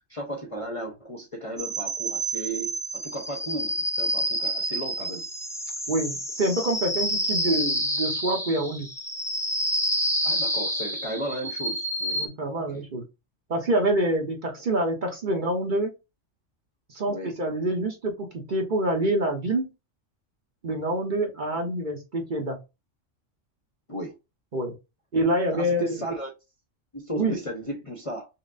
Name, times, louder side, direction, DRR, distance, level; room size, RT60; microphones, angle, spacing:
voice 1, 0.1-5.3 10.2-12.2 12.5-12.9 17.1-17.3 23.9-24.2 25.5-26.3 26.9-28.3, right 1 dB, 30° left, 0.7 m, -35 dB
sound 1, 1.6-12.3, equal, 5° left, 0.4 m, -29 dB
voice 2, 5.9-8.9 12.1-13.0 13.5-15.9 16.9-19.7 20.6-22.6 24.5-24.7 25.1-26.0 27.2-27.4, right 1 dB, 45° right, 1.0 m, -26 dB
5.6 x 2.1 x 2.5 m
omnidirectional pair, 1.3 m